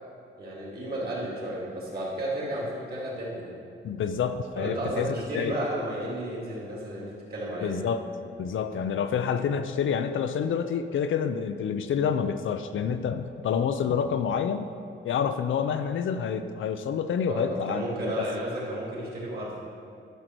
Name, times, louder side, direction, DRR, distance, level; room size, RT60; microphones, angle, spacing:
voice 1, 0.4-3.5 4.5-7.9 17.3-19.6, right 1 dB, 50° right, -5 dB, 2.7 m, -33 dB
voice 2, 3.8-5.6 7.6-8.0 8.4-14.7 15.0-17.9 18.2-18.3, left 7 dB, 75° left, 9 dB, 0.5 m, -28 dB
12.5 x 6.5 x 4.6 m, 2.5 s
wide cardioid pair, 170°, 21 cm